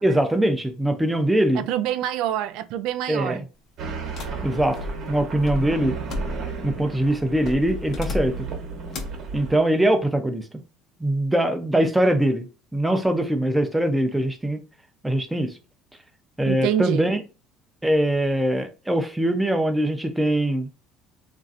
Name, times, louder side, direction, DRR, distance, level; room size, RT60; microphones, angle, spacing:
voice 1, 0.0-1.6 3.1-3.4 4.4-4.8 5.1-6.0 6.6-8.5 9.3-10.5 11.0-12.5 12.7-14.6 15.0-15.5 16.4-17.2 17.8-20.7, right 1 dB, 5° right, 0.5 m, -22 dB
voice 2, 1.5-3.5 16.5-17.1, right 11 dB, 70° right, 0.3 m, -26 dB
sound 1, 3.8-9.6, right 4 dB, 55° right, 0.9 m, -34 dB
sound 2, 4.2-6.7 7.4-8.5 8.9-9.3, left 2 dB, 55° left, 0.7 m, -34 dB
3.1 x 2.5 x 2.5 m
supercardioid pair, 105°, 0 cm